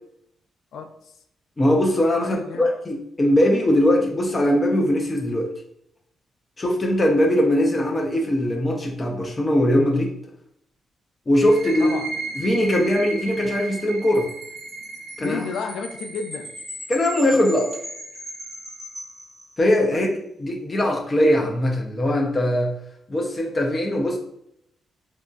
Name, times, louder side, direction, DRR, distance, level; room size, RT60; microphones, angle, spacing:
voice 1, 1.6-5.5 6.6-10.1 11.3-11.9 12.4-14.3 15.2-15.4 16.9-17.8 19.6-20.1 20.4-22.7 23.1-24.2, left 1 dB, 20° left, 0 dB, 0.4 m, -20 dB
voice 2, 2.2-2.7 11.8-12.1 15.2-16.5 19.9-20.0, left 5 dB, 85° left, 3 dB, 0.4 m, -32 dB
sound 1, 11.3-18.8, right 3 dB, 50° right, 0.4 m, -36 dB
Wind chime, 14.1-19.8, equal, 10° right, 1.3 m, -39 dB
2.8 x 2.6 x 2.3 m, 0.73 s
wide cardioid pair, 170°, 0 cm